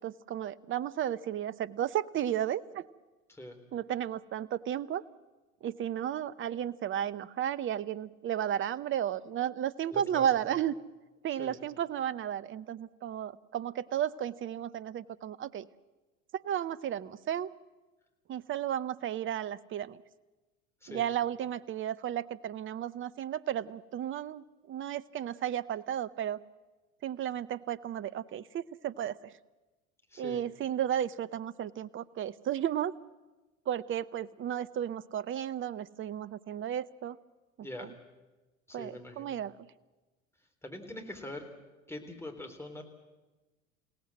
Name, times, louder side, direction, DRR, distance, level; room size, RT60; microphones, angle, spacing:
voice 1, 0.0-2.8 3.7-5.0 5.6-10.8 11.2-15.7 16.3-17.5 18.3-20.0 20.9-26.4 27.0-29.2 30.2-32.9 33.7-37.2 37.6-37.9 38.7-39.5, right 10 dB, 30° right, 16 dB, 0.8 m, -33 dB
voice 2, 9.9-10.2 11.3-11.6 20.8-21.0 30.1-30.4 37.6-37.9 38.7-39.4 40.6-41.5 41.9-42.8, left 1 dB, 5° left, 3 dB, 3.8 m, -43 dB
28.0 x 17.5 x 7.7 m, 1.2 s
figure-of-eight pair, 70°, 40 cm